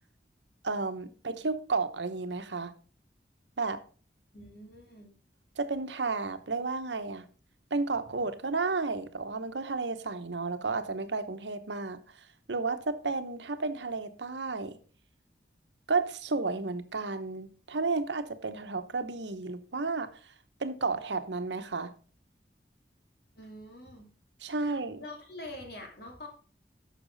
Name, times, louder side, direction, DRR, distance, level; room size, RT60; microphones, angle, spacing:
voice 1, 0.6-2.7 3.6-3.8 5.6-7.2 7.7-14.8 15.9-20.1 20.6-21.9 24.4-25.0, right 3 dB, 90° right, 1.0 m, -32 dB
voice 2, 4.3-5.1 23.3-24.1 24.4-26.3, left 1 dB, 65° left, 2.8 m, -45 dB
12.0 x 6.1 x 4.0 m
head